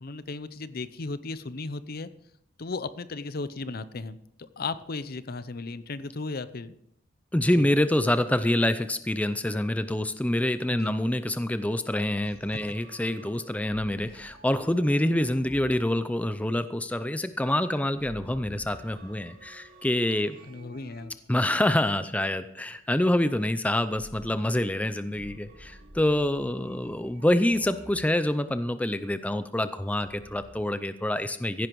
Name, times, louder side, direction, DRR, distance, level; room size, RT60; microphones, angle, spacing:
voice 1, 0.0-2.1 2.6-6.7 7.6-7.7 10.7-10.9 20.4-21.1, left 3 dB, 50° left, 14 dB, 0.7 m, -35 dB
voice 2, 7.3-20.4 21.3-31.7, left 1 dB, 10° left, 11 dB, 0.5 m, -26 dB
sound 1, 12.2-16.8 17.9-22.7 23.9-28.6 29.9-30.6, equal, 50° right, 2.7 m, -51 dB
16.0 x 10.5 x 4.7 m, 0.75 s
head